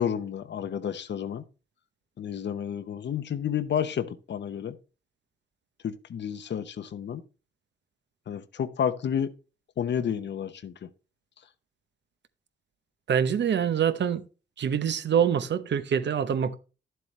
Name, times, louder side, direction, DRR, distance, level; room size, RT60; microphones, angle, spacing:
voice 1, 0.0-1.4 2.2-4.7 5.8-7.2 8.3-9.3 9.8-10.7, left 8 dB, 70° left, 0.9 m, -30 dB
voice 2, 13.1-14.2 14.6-16.5, right 8 dB, 70° right, 0.9 m, -25 dB
11.5 x 7.7 x 3.3 m
cardioid pair, 90°, 19 cm